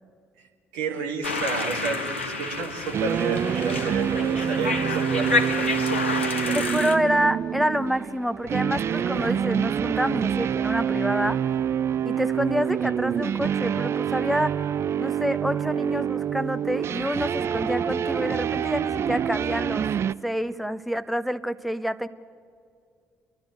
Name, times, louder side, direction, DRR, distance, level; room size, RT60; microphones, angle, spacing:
voice 1, 0.4-5.7 6.2-6.7 12.1-12.2, right 4 dB, 70° right, 2 dB, 2.0 m, -31 dB
sound 1, 1.2-7.0, left 3 dB, 90° left, 0.9 m, -29 dB
sound 2, 2.9-20.1, right 8 dB, 45° right, 0.4 m, -26 dB
voice 2, 6.5-11.4 12.0-14.6 15.0-19.9 20.2-22.1, equal, ahead, 13 dB, 0.9 m, -27 dB
30.0 x 11.5 x 9.0 m, 2.3 s
figure-of-eight pair, 45°, 6 cm